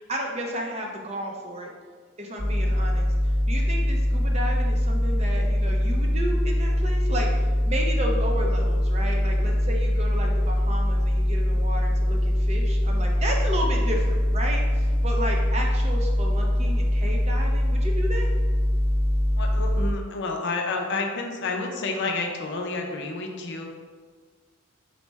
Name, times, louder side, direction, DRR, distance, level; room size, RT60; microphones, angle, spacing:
voice 1, 0.0-1.7 2.2-7.3 7.7-18.3, equal, 30° right, 0 dB, 0.5 m, -32 dB
sound 1, 2.4-19.9, equal, 25° left, 1.0 m, -23 dB
voice 2, 19.4-23.6, left 3 dB, 60° left, 2 dB, 0.5 m, -29 dB
4.1 x 2.1 x 4.5 m, 1.6 s
head